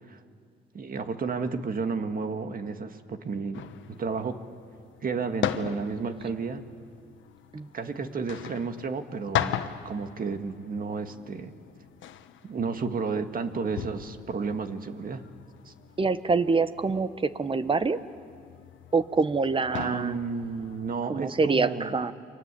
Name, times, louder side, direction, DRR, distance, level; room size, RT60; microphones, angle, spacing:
voice 1, 0.7-4.4 5.0-6.6 7.7-9.6 9.8-11.5 12.4-15.2 15.7-15.8 19.7-21.9, right 5 dB, 45° right, 8 dB, 1.9 m, -32 dB
sound 1, 3.5-21.0, left 10 dB, 75° left, 1.3 m, -39 dB
voice 2, 16.0-18.0 18.9-20.2 21.1-22.1, right 4 dB, 25° right, 13 dB, 1.1 m, -25 dB
29.0 x 23.5 x 8.4 m, 2.2 s
cardioid pair, 90°, 20 cm